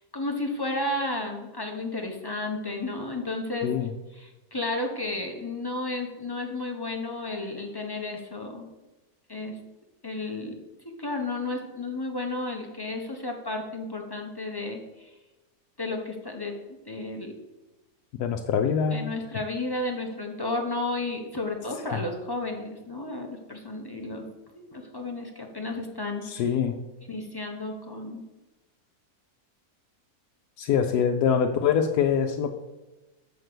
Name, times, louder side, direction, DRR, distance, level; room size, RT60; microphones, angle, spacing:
voice 1, 0.0-3.7 4.2-8.7 9.3-9.6 10.0-10.5 10.8-15.1 15.8-16.6 16.8-17.3 18.9-24.2 24.6-26.4 27.1-28.2, left 2 dB, 25° left, 2 dB, 0.6 m, -32 dB
voice 2, 18.2-19.1 26.2-26.8 30.6-32.5, left 7 dB, 90° left, 4 dB, 1.1 m, -24 dB
6.5 x 5.2 x 6.0 m, 1.1 s
omnidirectional pair, 1.6 m